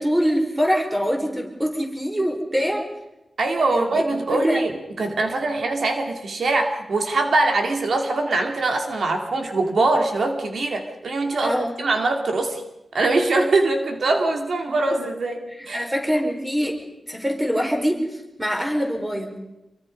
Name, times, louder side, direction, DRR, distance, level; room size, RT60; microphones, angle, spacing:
voice 1, 0.0-2.9 3.7-4.6 11.4-11.7 14.7-14.8 15.7-16.8 17.1-18.0 18.4-19.3, equal, 10° right, 3 dB, 4.8 m, -24 dB
voice 2, 3.4-4.7 5.0-12.6 12.9-15.9, right 2 dB, 65° right, 4 dB, 2.6 m, -22 dB
27.5 x 23.0 x 5.4 m, 0.91 s
wide cardioid pair, 115°, 0 cm